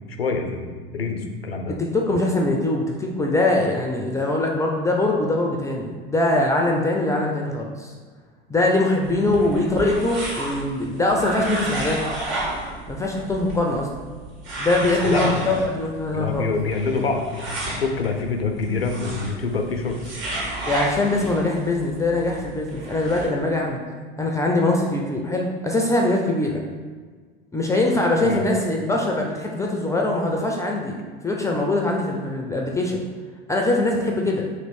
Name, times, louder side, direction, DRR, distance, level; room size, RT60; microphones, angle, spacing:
voice 1, 0.1-1.8 9.3-9.5 15.0-15.7 16.1-20.0 26.5-26.6 28.2-28.4, left 4 dB, 90° left, 4 dB, 0.5 m, -26 dB
voice 2, 1.8-7.9 8.5-12.0 12.9-13.9 14.6-16.5 20.7-23.9 24.2-26.6 27.5-31.0 31.2-33.0 33.5-34.5, left 2 dB, 10° left, 0 dB, 0.4 m, -22 dB
sound 1, 9.0-23.3, right 1 dB, 45° right, 1.5 m, -33 dB
3.0 x 3.0 x 4.2 m, 1.5 s
figure-of-eight pair, 75°, 29 cm